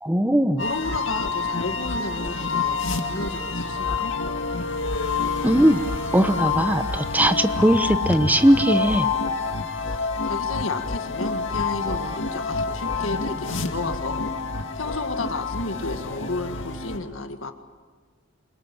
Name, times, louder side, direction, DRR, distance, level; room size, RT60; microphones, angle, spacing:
voice 1, 0.0-0.6 5.4-5.8 6.1-9.1, right 1 dB, 10° right, 10 dB, 1.0 m, -19 dB
voice 2, 0.6-4.2 10.2-14.2 14.8-17.5, left 3 dB, 85° left, 7 dB, 1.9 m, -32 dB
sound 1, 0.6-17.0, left 4 dB, 70° left, 2.1 m, -28 dB
24.5 x 21.5 x 8.9 m, 1.5 s
head